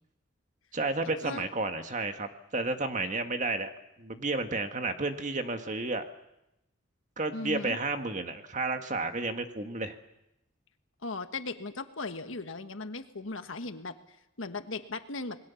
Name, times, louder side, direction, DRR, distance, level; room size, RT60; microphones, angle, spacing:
voice 1, 0.7-3.7 4.0-6.0 7.2-10.0, right 3 dB, 40° right, 6 dB, 1.7 m, -32 dB
voice 2, 7.3-7.8 11.0-13.9 14.4-15.4, left 3 dB, 80° left, 8 dB, 1.5 m, -37 dB
27.5 x 21.0 x 7.2 m, 0.88 s
head